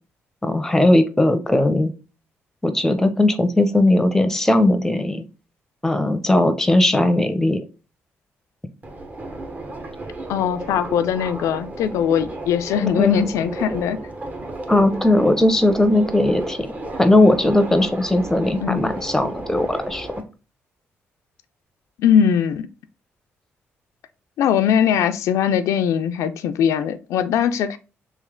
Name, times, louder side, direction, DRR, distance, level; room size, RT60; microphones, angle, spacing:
voice 1, 0.4-1.9 2.6-5.3 5.8-7.6 13.0-13.2 14.7-16.7 17.0-20.1, left 1 dB, 10° left, 0.6 m, -18 dB
Subway metro underground, 8.8-20.2, right 2 dB, 30° right, 0.8 m, -33 dB
voice 2, 10.3-14.0 18.6-18.9 22.0-22.7 24.4-27.8, left 8 dB, 85° left, 0.3 m, -20 dB
3.1 x 3.1 x 3.6 m
cardioid pair, 80°, 5 cm